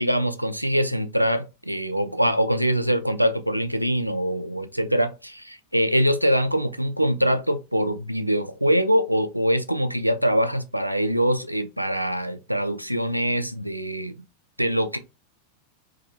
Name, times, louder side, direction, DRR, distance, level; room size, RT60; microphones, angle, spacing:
voice 1, 0.0-14.1 14.6-15.0, equal, 90° right, 0.3 m, -23 dB
2.7 x 2.3 x 2.6 m
figure-of-eight pair, 90°, 0 cm